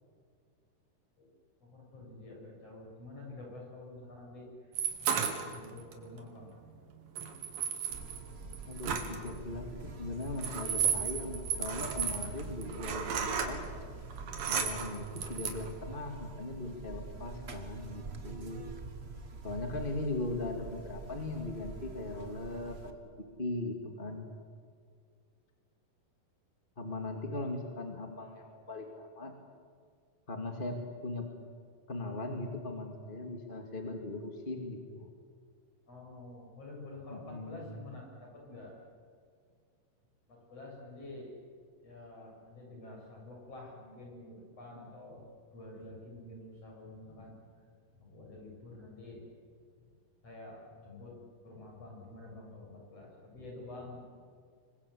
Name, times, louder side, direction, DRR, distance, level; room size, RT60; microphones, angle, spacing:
voice 1, 1.6-6.7 7.2-7.3 8.1-8.2 8.6-8.7 35.9-38.8 40.3-41.3 41.8-45.2 45.5-47.4 47.9-49.3 49.8-49.9 50.2-51.2 51.4-54.0, left 2 dB, 45° left, -1 dB, 8.4 m, -49 dB
sound 1, 4.8-5.9 7.2-9.3 10.2-13.5 14.1-15.7, right 7 dB, 90° right, 3.9 m, -33 dB
Buzz, 7.9-22.9, right 3 dB, 35° right, 1.0 m, -45 dB
voice 2, 8.7-13.6 14.5-18.6 19.4-22.9 23.4-24.3 26.8-29.3 30.3-31.3 31.9-35.1 37.1-37.8, left 2 dB, 20° left, 3 dB, 2.1 m, -39 dB
26.5 x 23.5 x 8.6 m, 2.1 s
omnidirectional pair, 3.8 m